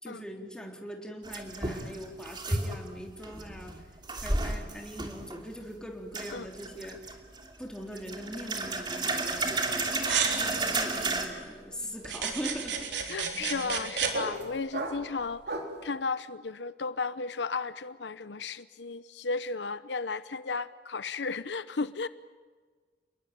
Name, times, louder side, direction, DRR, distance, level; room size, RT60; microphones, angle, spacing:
voice 1, 0.0-3.8 4.2-7.1 7.6-10.0 10.3-12.9 13.4-13.5, equal, 5° left, 1 dB, 3.5 m, -41 dB
sound 1, 1.2-2.9 3.2-5.4 6.1-7.5 7.9-11.3, right 2 dB, 25° right, 2.8 m, -32 dB
sound 2, 9.6-15.9, right 2 dB, 65° right, 3.9 m, -40 dB
sound 3, 10.0-11.1 12.0-14.1, right 6 dB, 80° right, 4.0 m, -32 dB
voice 2, 13.1-15.5 15.8-22.1, left 4 dB, 75° left, 14 dB, 0.8 m, -34 dB
29.0 x 21.0 x 9.0 m, 1.5 s
head